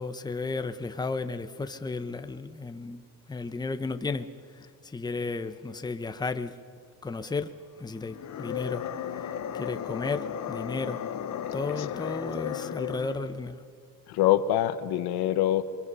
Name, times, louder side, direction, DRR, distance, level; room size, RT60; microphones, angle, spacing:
voice 1, 0.0-3.0 3.3-4.3 4.5-6.6 7.0-7.5 7.8-8.9 9.2-11.0 11.5-13.6, left 3 dB, 10° left, 0.9 m, -34 dB
sound 1, 8.0-13.4, left 9 dB, 50° left, 1.1 m, -35 dB
voice 2, 11.8-12.1 14.1-15.6, left 12 dB, 80° left, 1.2 m, -25 dB
27.5 x 23.5 x 5.6 m
cardioid pair, 110°, 37 cm